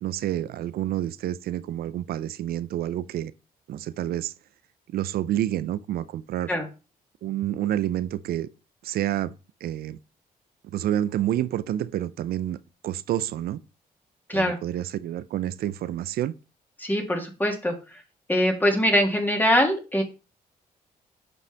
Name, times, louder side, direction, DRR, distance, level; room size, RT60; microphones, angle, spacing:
voice 1, 0.0-3.3 3.7-4.3 4.9-6.5 7.2-8.5 8.8-9.3 9.6-10.0 10.6-12.6 12.8-13.6 14.3-16.3, right 12 dB, 75° right, 0.5 m, -28 dB
voice 2, 16.8-18.0 18.3-20.0, equal, 10° left, 2.4 m, -23 dB
8.0 x 5.5 x 3.5 m
cardioid pair, 80°, 16 cm